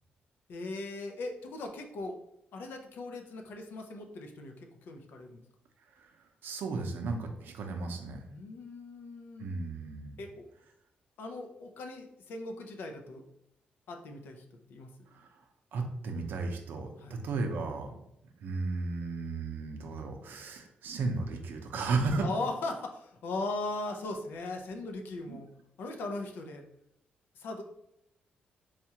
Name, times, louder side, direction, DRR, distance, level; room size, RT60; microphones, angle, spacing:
voice 1, 0.5-2.2 2.5-5.4 8.3-9.5 10.2-10.4 11.2-13.2 13.9-14.4 14.7-14.9 17.0-17.2 22.2-25.5 25.8-26.6 27.4-27.6, left 2 dB, 80° left, 4 dB, 0.5 m, -39 dB
voice 2, 6.4-8.2 9.4-10.2 15.1-15.3 15.7-18.0 18.4-22.3 25.3-25.4, right 3 dB, 70° right, 4 dB, 0.6 m, -34 dB
4.3 x 2.4 x 2.8 m, 0.81 s
wide cardioid pair, 175°, 3 cm